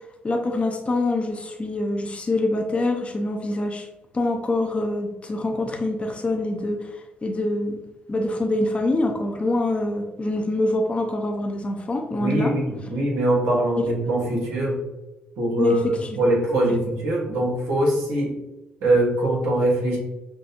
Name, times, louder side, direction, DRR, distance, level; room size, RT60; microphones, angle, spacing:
voice 1, 0.2-3.9 4.1-7.8 8.1-12.5 13.8-13.9 15.6-15.8 16.5-16.6, left 2 dB, 30° left, 2 dB, 0.7 m, -25 dB
voice 2, 12.2-14.8 15.4-15.9 16.2-18.4 18.8-20.0, right 1 dB, 85° right, -3 dB, 1.2 m, -22 dB
6.0 x 2.3 x 2.7 m, 1.0 s
supercardioid pair, 55°, 4 cm